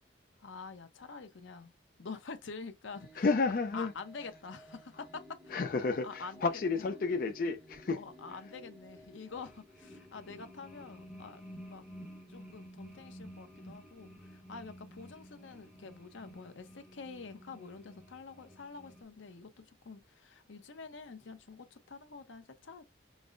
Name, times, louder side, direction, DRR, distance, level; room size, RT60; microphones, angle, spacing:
voice 1, 0.4-1.7 2.0-3.2 3.7-5.5 6.0-6.8 7.9-11.4 11.7-11.8 12.3-22.9, left 4 dB, 85° left, 0.7 m, -47 dB
sound 1, 2.9-19.0, equal, 5° right, 0.8 m, -53 dB
voice 2, 3.2-3.9 5.5-8.0, left 4 dB, 45° left, 0.4 m, -31 dB
5.2 x 2.0 x 2.5 m
head